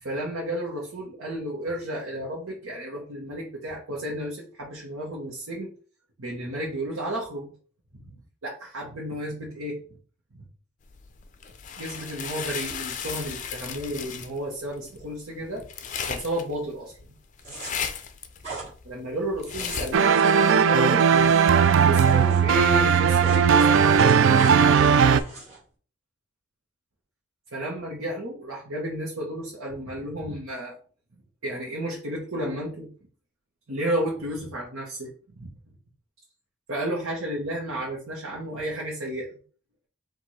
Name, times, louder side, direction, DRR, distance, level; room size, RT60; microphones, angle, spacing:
voice 1, 0.0-5.7 6.2-7.5 7.9-8.1 8.4-9.8 10.3-10.4 11.8-15.6 16.1-17.0 18.8-24.6 27.5-30.7 31.4-32.9 33.7-35.1 35.3-35.5 36.7-39.3, right 1 dB, 85° right, -3 dB, 1.1 m, -32 dB
sound 1, 10.9-20.1, left 7 dB, 35° left, 0.4 m, -36 dB
sound 2, 17.4-17.7 18.4-18.7 19.4-22.4 22.7-23.4 23.7-24.5 25.1-25.6, right 3 dB, 35° right, 1.5 m, -39 dB
sound 3, 19.9-25.2, right 6 dB, 60° right, 0.3 m, -18 dB
4.7 x 2.6 x 4.1 m, 0.42 s
head